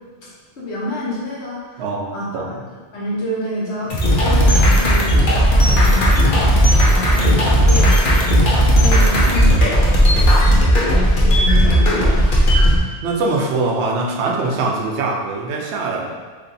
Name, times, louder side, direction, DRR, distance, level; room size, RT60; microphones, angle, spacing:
voice 1, 0.6-1.8 2.1-5.2 5.5-8.3 8.7-9.6 10.1-12.4, equal, 75° left, -6 dB, 1.3 m, -28 dB
voice 2, 1.8-2.6 7.1-7.6 9.2-9.4 13.0-16.2, right 3 dB, 80° right, 1 dB, 0.9 m, -23 dB
sound 1, 3.9-12.8, equal, 55° left, 0.8 m, -14 dB
3.1 x 2.6 x 3.9 m, 1.5 s
omnidirectional pair, 1.1 m